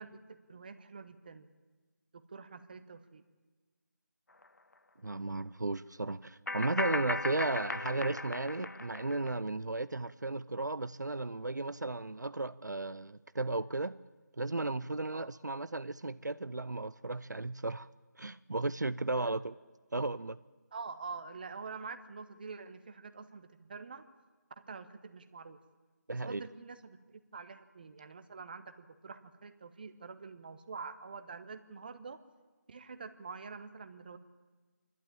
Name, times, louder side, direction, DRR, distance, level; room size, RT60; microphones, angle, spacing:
voice 1, 0.0-1.5 2.1-3.2 15.1-15.3 19.1-19.3 20.7-24.0 24.6-25.6 26.1-32.2 32.7-34.2, right 4 dB, 30° right, 10 dB, 1.1 m, -46 dB
sound 1, 4.4-4.5 6.5-9.3, left 2 dB, 70° left, 0.8 m, -37 dB
voice 2, 5.0-14.0 14.4-17.9 18.2-19.5 19.9-20.4 26.1-26.4, right 2 dB, 75° right, 15 dB, 0.6 m, -35 dB
28.5 x 12.0 x 8.9 m, 1.4 s
figure-of-eight pair, 160°, 10 cm